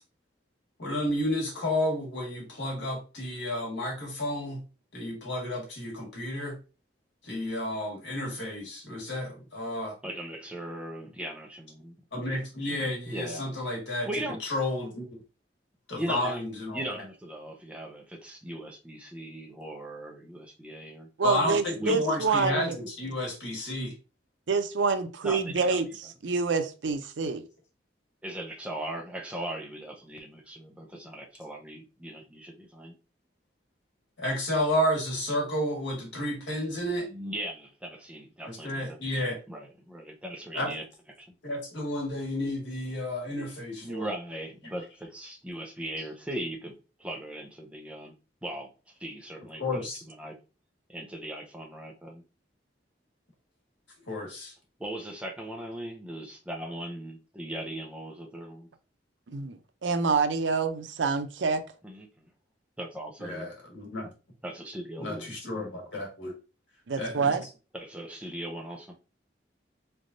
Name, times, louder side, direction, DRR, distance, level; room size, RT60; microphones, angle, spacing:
voice 1, 0.8-4.6 4.9-6.6 7.2-9.9 12.1-14.1 14.4-15.1 15.9-17.0 21.2-23.9 34.2-37.1 38.5-39.4 40.5-40.7 41.4-44.1 49.6-50.0 54.1-54.5 63.2-64.1 65.0-66.3 67.0-67.3, left 1 dB, 85° left, 1.6 m, -31 dB
voice 2, 10.0-11.9 13.1-13.4 14.1-14.4 15.9-16.4 16.7-21.1 21.8-22.0 25.2-25.8 28.2-33.0 37.1-39.0 39.5-40.8 41.2-41.3 43.8-48.1 48.4-50.4 50.9-52.2 54.8-58.7 61.8-62.3 62.8-63.5 64.4-65.3 67.7-69.0, right 1 dB, 5° right, 0.7 m, -38 dB
voice 3, 21.2-22.8 24.5-27.4 59.3-61.6 66.9-67.5, right 4 dB, 90° right, 0.5 m, -27 dB
4.1 x 3.4 x 2.6 m
head